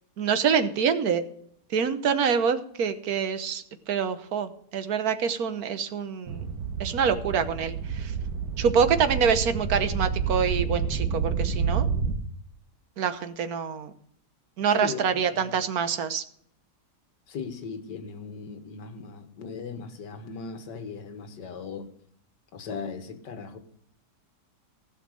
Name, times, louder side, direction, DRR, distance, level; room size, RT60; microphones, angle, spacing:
voice 1, 0.2-1.2 1.7-6.5 6.8-8.1 8.6-11.9 13.0-13.9 14.6-16.2, right 7 dB, 60° right, 1.5 m, -26 dB
sound 1, 6.3-12.2, right 6 dB, 85° right, 2.0 m, -29 dB
voice 2, 14.7-15.6 17.3-21.9 22.5-23.6, left 5 dB, 80° left, 1.9 m, -38 dB
16.0 x 6.6 x 6.3 m
omnidirectional pair, 1.8 m